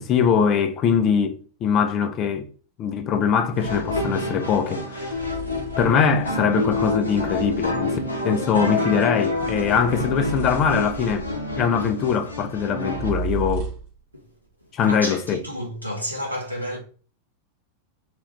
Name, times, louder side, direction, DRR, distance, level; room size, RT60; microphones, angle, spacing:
voice 1, 0.0-2.5 2.8-5.2 5.8-11.3 11.6-13.7 14.7-15.4, left 7 dB, 35° left, 0.5 m, -22 dB
sound 1, 3.5-13.1, left 2 dB, 80° left, 0.7 m, -28 dB
sound 2, 3.9-4.2 5.1-8.1 9.3-11.5 12.9-14.0, right 3 dB, 55° right, 1.2 m, -34 dB
voice 2, 14.9-16.8, equal, 90° right, 1.0 m, -31 dB
3.0 x 2.4 x 3.1 m
figure-of-eight pair, 90°, 0 cm